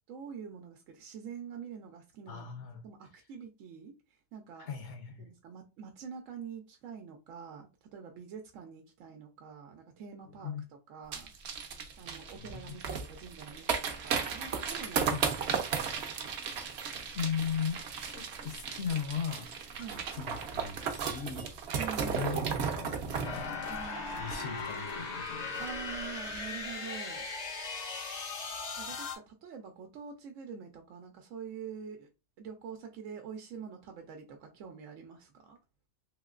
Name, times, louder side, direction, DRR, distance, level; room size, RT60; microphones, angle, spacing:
voice 1, 0.1-4.7 5.2-11.3 12.0-15.9 19.8-20.1 21.8-22.4 23.6-24.2 25.6-27.3 28.4-32.1 32.4-35.6, right 7 dB, 85° right, 1.0 m, -46 dB
voice 2, 2.3-2.8 4.6-5.3 10.4-10.6 12.4-12.8 15.1-15.3 17.1-17.8 18.1-19.5 19.8-21.5 22.0-22.5 22.7-23.0 23.3-23.6 24.2-25.6, left 7 dB, 65° left, 0.9 m, -37 dB
sound 1, 11.1-24.9 25.2-25.3 25.5-25.9 26.2-26.4, right 6 dB, 65° right, 0.8 m, -35 dB
sound 2, 23.2-29.2, left 4 dB, 45° left, 0.6 m, -38 dB
3.4 x 2.9 x 2.4 m
omnidirectional pair, 1.3 m